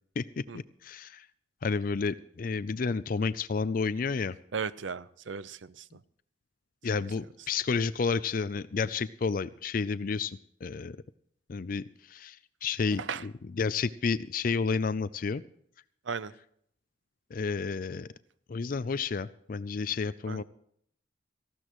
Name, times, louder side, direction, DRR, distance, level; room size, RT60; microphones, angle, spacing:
voice 1, 0.2-1.2 1.6-4.4 6.8-11.0 11.5-13.3 13.6-15.4 17.3-18.1 18.5-20.4, left 5 dB, 45° left, 15 dB, 0.4 m, -31 dB
voice 2, 4.5-6.0 13.0-13.2 16.1-16.3 20.3-20.4, right 6 dB, 80° right, 16 dB, 0.7 m, -36 dB
19.0 x 15.0 x 3.1 m, 0.67 s
head